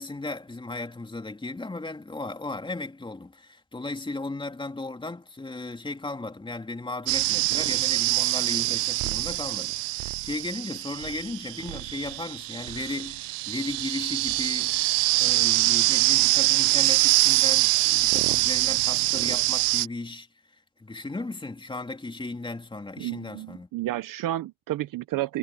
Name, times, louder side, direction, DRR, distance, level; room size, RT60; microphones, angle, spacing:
voice 1, 0.0-14.8 15.2-20.3 20.8-23.7, left 2 dB, 10° left, 3.2 m, -36 dB
sound 1, 7.1-19.9, right 25 dB, 70° right, 0.6 m, -24 dB
voice 2, 23.0-25.4, right 15 dB, 50° right, 0.9 m, -31 dB
cardioid pair, 110°, 42 cm